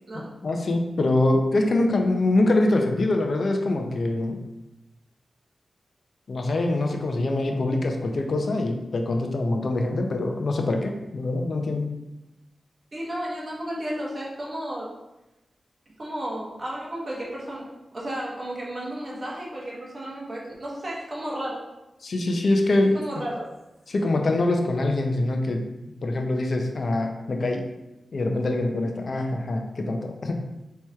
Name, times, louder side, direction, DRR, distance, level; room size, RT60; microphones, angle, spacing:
voice 1, 0.1-4.4 6.3-11.9 22.0-23.0 23.9-25.6 26.0-27.7 28.1-30.4, left 2 dB, 60° left, 3 dB, 0.6 m, -24 dB
voice 2, 12.9-14.9 16.0-17.7 17.9-21.6 22.9-23.5 29.1-29.2, right 1 dB, 40° right, -4 dB, 1.3 m, -33 dB
4.4 x 3.0 x 3.5 m, 0.96 s
wide cardioid pair, 90°, 0 cm